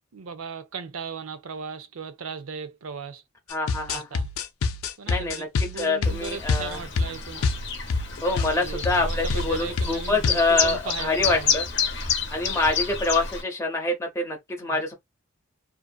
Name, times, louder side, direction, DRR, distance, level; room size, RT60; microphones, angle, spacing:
voice 1, 0.1-3.2 3.9-4.3 5.0-7.4 8.5-11.5 14.7-14.8, right 6 dB, 80° right, 0.5 m, -37 dB
sound 1, 3.5-8.1 8.4-8.5 8.8-9.0 9.3-9.5 9.8-10.5, left 4 dB, 80° left, 0.4 m, -26 dB
voice 2, 3.5-4.1 5.1-6.8 8.2-11.7 12.3-14.9, left 2 dB, 15° left, 0.6 m, -26 dB
Chirp tweet, 6.0-13.4, left 6 dB, 55° left, 0.7 m, -29 dB
2.6 x 2.5 x 2.3 m
head